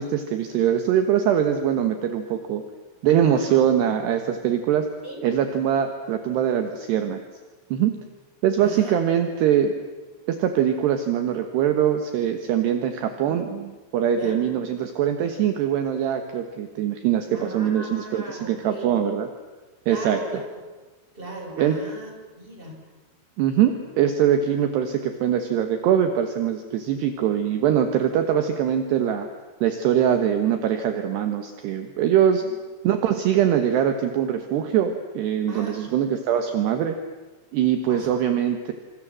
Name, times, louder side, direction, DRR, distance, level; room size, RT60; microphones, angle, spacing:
voice 1, 0.0-2.6 3.0-4.9 5.2-7.2 7.7-8.0 8.4-9.7 10.3-19.3 19.9-20.2 21.6-21.8 23.4-29.3 29.6-32.4 32.8-37.0 37.5-38.7, right 9 dB, 70° right, 7 dB, 3.1 m, -22 dB
voice 2, 8.6-9.0 14.2-14.4 17.3-19.0 19.9-20.4 21.1-22.8 32.4-32.5 35.5-35.9 36.3-36.5 37.9-38.3, right 2 dB, 10° right, 1 dB, 6.0 m, -37 dB
28.0 x 26.5 x 7.5 m, 1.3 s
omnidirectional pair, 5.6 m